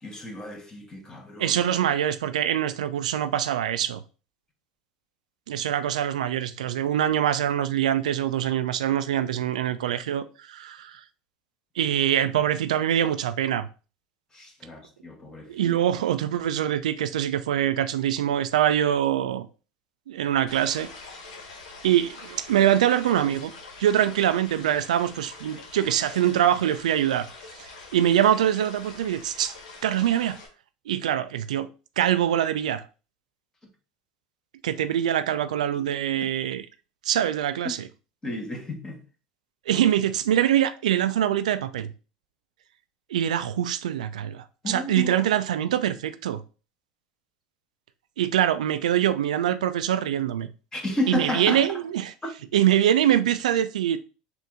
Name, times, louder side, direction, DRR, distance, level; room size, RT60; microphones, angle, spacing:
voice 1, 0.0-1.6 14.3-15.8 37.6-37.8 38.2-39.0 44.6-45.2 50.7-51.6 52.2-52.3, left 1 dB, 15° left, 1.3 m, -32 dB
voice 2, 1.4-4.0 5.5-11.0 11.8-13.7 15.5-19.5 20.1-20.9 21.8-23.5 23.8-27.3 27.6-29.5 29.8-30.4 30.9-31.7 32.0-32.8 34.6-36.6 37.1-37.8 39.7-41.9 43.1-46.4 48.2-50.5 51.1-52.1 52.5-54.0, right 10 dB, 90° right, 0.3 m, -24 dB
sound 1, 20.5-30.5, left 3 dB, 85° left, 1.2 m, -44 dB
4.0 x 2.6 x 3.6 m
hypercardioid pair, 95°, 4 cm